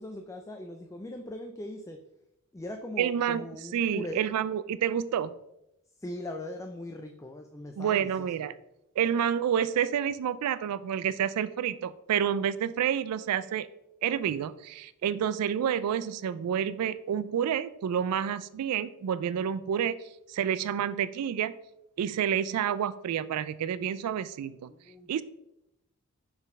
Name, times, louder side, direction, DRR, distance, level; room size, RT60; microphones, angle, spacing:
voice 1, 0.0-2.0 2.5-4.3 5.9-8.3 24.7-25.2, left 1 dB, 15° left, 4 dB, 0.4 m, -40 dB
voice 2, 3.0-3.5 3.7-5.3 7.8-8.5 9.0-13.7 14.0-21.5 22.0-24.7 25.1-25.2, right 9 dB, 90° right, 16 dB, 0.3 m, -29 dB
5.9 x 4.2 x 5.2 m, 0.85 s
head